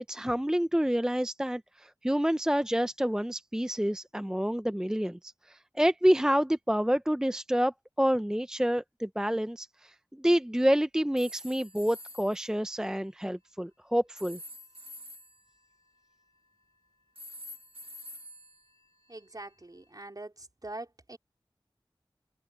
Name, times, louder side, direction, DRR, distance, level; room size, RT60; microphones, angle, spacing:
voice 1, 0.0-14.4, equal, 5° right, 0.6 m, -28 dB
sound 1, 11.2-12.5 14.2-16.6 17.1-19.5, equal, 90° right, 1.7 m, -48 dB
voice 2, 19.1-21.2, right 2 dB, 45° right, 4.5 m, -43 dB
open air
wide cardioid pair, 55°, 9 cm